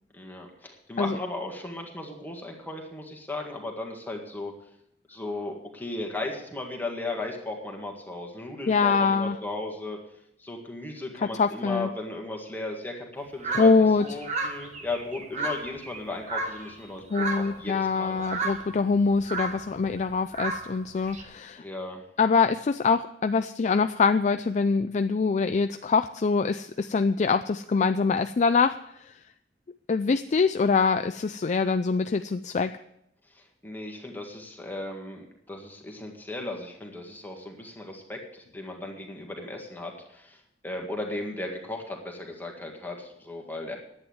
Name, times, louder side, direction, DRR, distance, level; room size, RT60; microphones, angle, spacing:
voice 1, 0.1-4.5 5.1-10.0 10.4-18.1 21.6-22.0 33.4-40.4 40.6-43.8, left 2 dB, 10° left, 1 dB, 1.8 m, -36 dB
voice 2, 8.7-9.4 11.2-11.9 13.5-14.1 17.1-21.6 22.2-28.8 29.1-29.2 29.9-32.7, left 4 dB, 40° left, 9 dB, 0.4 m, -24 dB
sound 1, 13.4-16.9 17.1-17.7 18.1-21.2, right 3 dB, 40° right, 1.4 m, -33 dB
10.5 x 8.8 x 7.9 m, 0.78 s
head